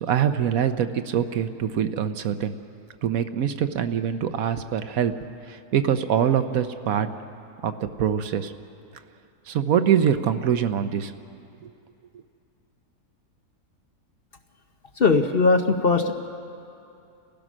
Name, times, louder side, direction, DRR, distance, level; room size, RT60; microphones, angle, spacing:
voice 1, 0.0-2.5 3.0-5.1 5.5-7.1 7.6-7.7 8.0-8.5 9.5-11.1 11.6-11.7, right 9 dB, 70° right, 10 dB, 1.1 m, -24 dB
voice 2, 15.0-16.1, left 4 dB, 45° left, 5 dB, 0.9 m, -19 dB
29.5 x 15.5 x 6.2 m, 2.6 s
omnidirectional pair, 1.6 m